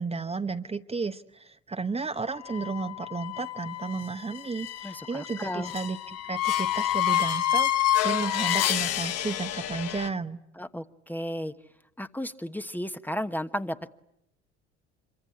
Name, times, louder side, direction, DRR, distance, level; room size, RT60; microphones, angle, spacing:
voice 1, 0.0-10.4, right 4 dB, 20° right, 7 dB, 1.1 m, -33 dB
sound 1, 2.4-10.1, left 11 dB, 50° left, 1.1 m, -28 dB
voice 2, 4.8-5.7 10.6-11.5 12.0-13.9, equal, 5° left, 10 dB, 1.2 m, -34 dB
27.0 x 24.0 x 8.8 m, 0.80 s
hypercardioid pair, 65°, 33 cm